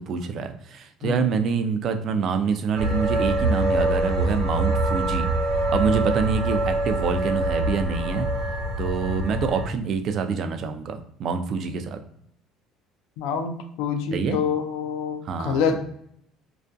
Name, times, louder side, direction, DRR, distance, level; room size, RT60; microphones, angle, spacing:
voice 1, 0.0-5.3 5.7-8.3 8.8-12.0 14.1-14.4 15.2-15.6, right 6 dB, 45° right, 7 dB, 0.3 m, -26 dB
sound 1, 2.7-9.7, right 1 dB, 85° right, 0.8 m, -24 dB
voice 2, 13.2-15.9, left 6 dB, 85° left, 6 dB, 0.3 m, -26 dB
2.3 x 2.2 x 2.5 m, 0.68 s
cardioid pair, 125°, 0 cm